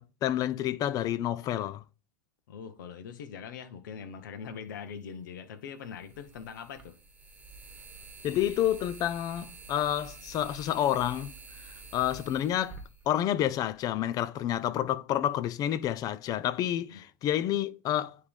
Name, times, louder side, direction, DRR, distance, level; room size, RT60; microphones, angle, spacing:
voice 1, 0.0-1.8 8.2-11.3 11.6-18.2, left 11 dB, 35° left, 0.5 m, -29 dB
voice 2, 2.5-6.9 16.9-17.0, left 7 dB, 75° left, 1.1 m, -42 dB
sound 1, 4.5-4.6 5.9-13.9, right 4 dB, 15° right, 1.5 m, -48 dB
9.5 x 3.4 x 3.6 m
hypercardioid pair, 120°, 11 cm